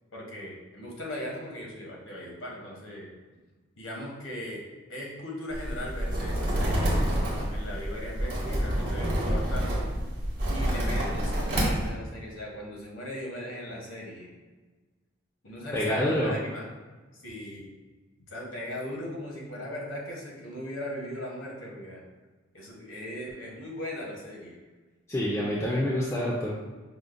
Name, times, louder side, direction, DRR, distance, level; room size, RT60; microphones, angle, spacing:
voice 1, 0.1-3.1 3.8-4.6 4.9-6.9 7.5-9.9 10.5-14.3 15.4-16.7 17.2-17.7 18.3-22.0 22.5-24.6, left 1 dB, 80° left, -2 dB, 0.9 m, -38 dB
sound 1, 5.5-11.9, equal, 50° right, 1.0 m, -28 dB
voice 2, 15.7-16.3 25.1-26.5, left 1 dB, 15° left, -6 dB, 0.3 m, -27 dB
4.9 x 2.1 x 2.4 m, 1.3 s
head